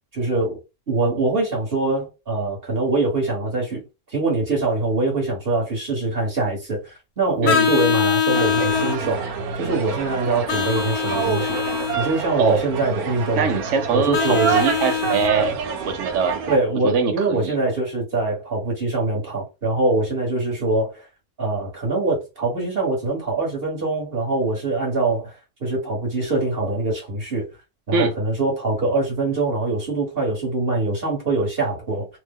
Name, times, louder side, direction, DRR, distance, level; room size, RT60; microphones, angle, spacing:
voice 1, 0.1-0.6 0.9-3.8 4.1-9.2 9.6-11.6 12.0-13.5 13.9-14.6 16.5-21.0 21.4-25.3 25.6-27.5 27.9-32.1, right 2 dB, 40° right, 1.3 m, -23 dB
Vehicle horn car horn honking, 7.4-9.0 10.5-12.0 14.1-15.3, left 8 dB, 80° left, 1.1 m, -22 dB
sound 1, 8.3-16.6, right 6 dB, 80° right, 1.1 m, -27 dB
voice 2, 13.4-15.6 15.8-16.4 16.8-17.6 27.9-28.1, right 5 dB, 60° right, 0.9 m, -22 dB
2.9 x 2.1 x 3.5 m
omnidirectional pair, 1.6 m